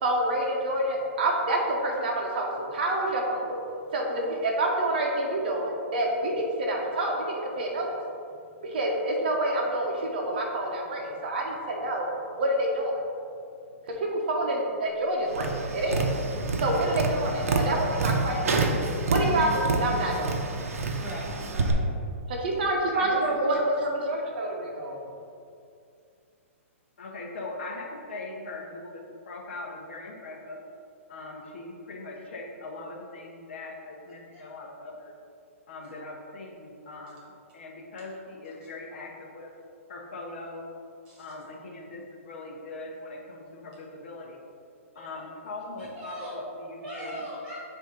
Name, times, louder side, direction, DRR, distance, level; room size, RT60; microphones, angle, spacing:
voice 1, 0.0-3.6 3.9-7.9 8.6-12.1 12.4-13.0 14.0-16.1 16.6-18.6 19.1-20.4 22.3-25.0, right 1 dB, 40° right, 0 dB, 0.8 m, -27 dB
Tap, 15.3-21.7, right 3 dB, 85° right, 0.8 m, -28 dB
voice 2, 19.1-19.6 21.0-21.9 34.3-34.4 41.0-41.2 44.9-45.2 45.8-46.3 46.8-47.6, right 1 dB, 15° right, -6 dB, 1.4 m, -39 dB
voice 3, 22.6-23.6 27.0-30.6 31.1-35.2 35.7-39.5 39.9-40.7 41.2-44.4 44.9-47.2, left 2 dB, 55° left, 0 dB, 0.9 m, -40 dB
8.0 x 2.7 x 5.1 m, 2.4 s
hypercardioid pair, 180°, 8 cm